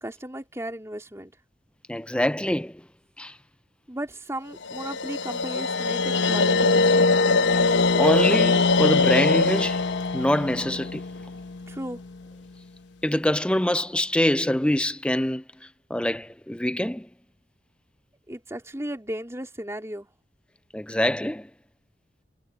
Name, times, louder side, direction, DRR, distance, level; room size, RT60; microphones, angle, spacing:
voice 1, 0.0-1.3 3.9-7.1 11.7-12.0 18.3-20.1, right 1 dB, 15° right, 3.6 m, -35 dB
voice 2, 1.9-2.8 3.2-3.3 8.0-9.8 10.1-11.0 13.0-15.4 15.9-17.1 20.7-21.5, left 1 dB, 5° left, 0.6 m, -24 dB
sound 1, 4.6-11.8, left 3 dB, 85° left, 1.0 m, -22 dB
head